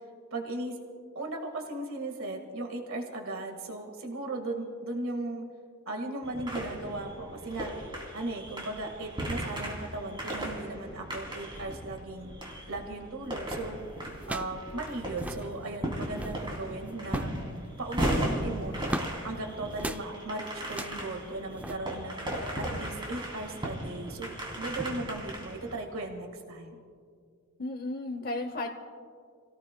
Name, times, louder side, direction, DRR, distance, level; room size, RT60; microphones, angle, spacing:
voice 1, 0.3-0.8 1.1-5.4 5.8-7.7 8.1-12.3 12.7-13.8 14.3-17.3 17.8-19.0 19.2-22.2 22.6-26.8, right 2 dB, 75° right, 3 dB, 1.7 m, -37 dB
sound 1, 6.2-25.8, right 1 dB, 25° right, 2.8 m, -36 dB
sound 2, 13.2-13.5 14.2-14.6 14.9-15.0 15.1-15.5 16.0-16.5 17.0-17.4 17.9-19.2 19.8-20.1 20.7-21.0 21.6-21.8, right 1 dB, 5° right, 0.4 m, -36 dB
voice 2, 27.6-28.7, left 2 dB, 45° left, 4 dB, 0.8 m, -34 dB
29.0 x 17.5 x 2.2 m, 2.1 s
head